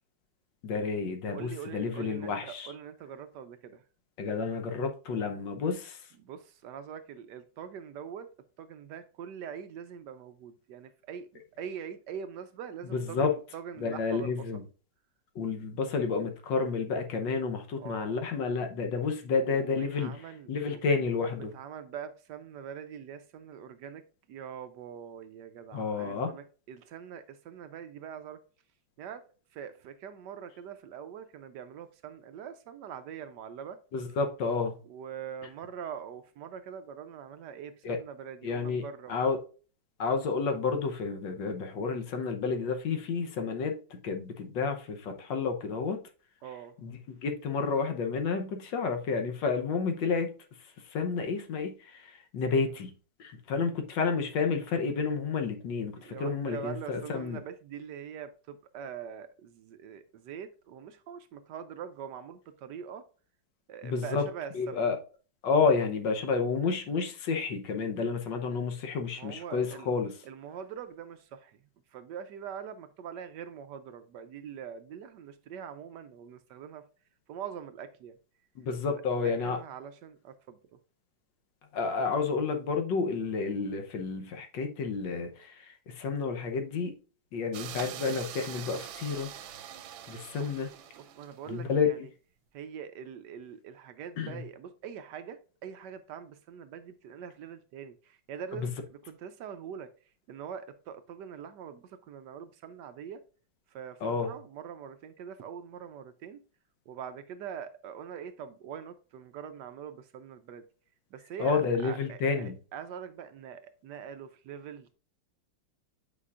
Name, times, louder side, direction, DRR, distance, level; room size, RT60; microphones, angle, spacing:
voice 1, 0.6-2.7 4.2-6.0 12.9-13.3 13.8-14.6 15.3-20.1 20.5-21.5 25.7-26.3 33.9-34.7 37.8-38.0 38.4-38.8 39.1-39.4 40.0-46.0 46.8-46.9 47.2-50.3 50.9-52.9 53.2-57.4 63.8-64.2 64.5-65.0 65.4-70.1 78.6-79.6 81.7-86.9 87.3-89.3 90.1-90.7 91.5-91.9 94.2-94.4 98.6-98.7 104.0-104.3 111.4-112.6, left 5 dB, 70° left, 1.5 m, -30 dB
voice 2, 1.3-3.8 6.2-8.3 8.6-14.5 17.8-18.3 19.3-20.8 21.5-24.0 24.3-28.4 29.0-29.2 29.5-33.8 34.8-39.1 46.4-46.8 52.5-52.8 55.9-63.0 63.7-64.9 69.2-69.9 70.2-71.6 71.9-76.8 77.3-78.2 78.9-80.6 90.4-90.6 91.0-92.1 92.5-99.9 100.3-103.2 103.7-106.4 106.9-110.6 111.1-114.9, right 8 dB, 70° right, 1.1 m, -43 dB
sound 1, 87.5-91.6, right 10 dB, 90° right, 1.5 m, -43 dB
8.3 x 4.9 x 2.4 m
omnidirectional pair, 2.1 m